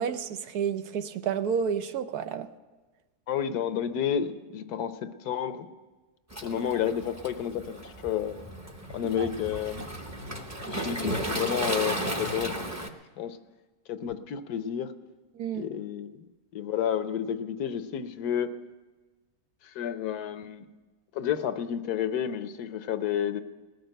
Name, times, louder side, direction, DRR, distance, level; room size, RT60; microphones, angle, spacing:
voice 1, 0.0-2.5 9.2-9.3 15.3-15.7, right 7 dB, 75° right, 10 dB, 1.2 m, -30 dB
voice 2, 3.3-5.7 6.4-8.4 8.9-9.9 10.6-12.8 13.2-13.4 13.9-14.9 15.5-16.3 16.5-18.5 19.6-20.7 21.1-23.4, left 9 dB, 80° left, 10 dB, 1.3 m, -31 dB
Waves surf, 6.3-12.9, right 1 dB, 15° right, 0.7 m, -34 dB
19.0 x 6.7 x 9.0 m, 1.3 s
omnidirectional pair, 1.7 m